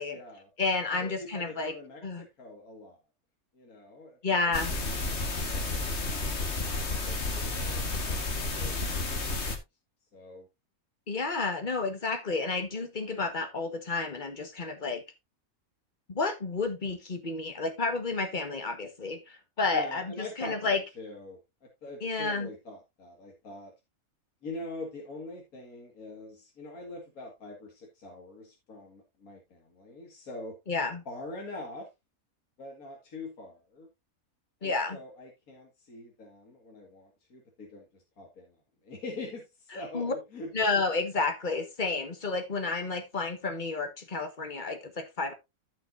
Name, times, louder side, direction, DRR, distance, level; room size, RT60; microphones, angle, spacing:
voice 1, 0.0-0.5 0.9-3.0 3.5-4.2 4.4-5.2 5.5-6.4 6.8-8.2 8.5-9.6 10.1-10.5 19.7-23.7 24.4-30.6 31.1-31.9 32.6-33.9 34.6-38.6 38.8-40.5, left 2 dB, 75° left, 2.4 m, -44 dB
voice 2, 0.6-1.7 2.0-2.2 4.2-4.7 11.1-15.0 16.1-20.8 22.0-22.5 30.7-31.0 34.6-35.0 39.9-40.1 40.5-45.3, left 3 dB, 35° left, 1.6 m, -31 dB
sound 1, 4.5-9.6, left 3 dB, 50° left, 1.8 m, -31 dB
14.5 x 5.9 x 2.6 m
omnidirectional pair, 1.5 m